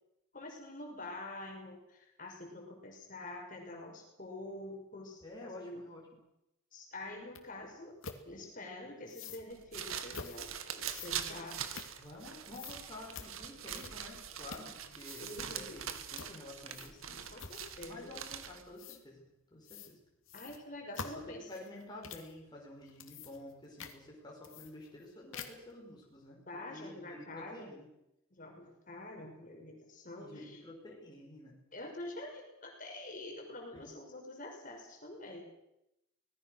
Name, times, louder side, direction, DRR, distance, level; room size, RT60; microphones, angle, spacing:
voice 1, 0.3-5.8 6.7-8.0 8.2-11.8 15.2-15.8 17.3-18.2 20.3-21.5 26.5-27.8 28.3-30.6 31.7-35.5, left 2 dB, 40° left, 2 dB, 5.8 m, -46 dB
voice 2, 5.2-6.0 12.0-17.3 17.9-19.2 19.5-20.0 21.3-26.4 26.7-27.9 30.2-31.6 33.7-33.9, left 1 dB, 20° left, -3 dB, 5.3 m, -50 dB
sound 1, 7.3-7.4 8.0-8.2 9.1-9.4 10.1-10.4 10.9-12.3 12.5-12.8 13.1-13.3 13.7-14.1 14.4-14.8 15.0-15.5 16.1-16.3 16.7-17.1 17.4-17.8 18.8-19.0 19.6-19.9 20.3-22.3 22.8-23.5 23.8-24.0 24.4-25.0 25.3-25.7, left 5 dB, 70° left, 2.7 m, -47 dB
sound 2, 9.5-18.7, right 8 dB, 80° right, 2.1 m, -43 dB
25.0 x 19.5 x 6.6 m, 0.87 s
head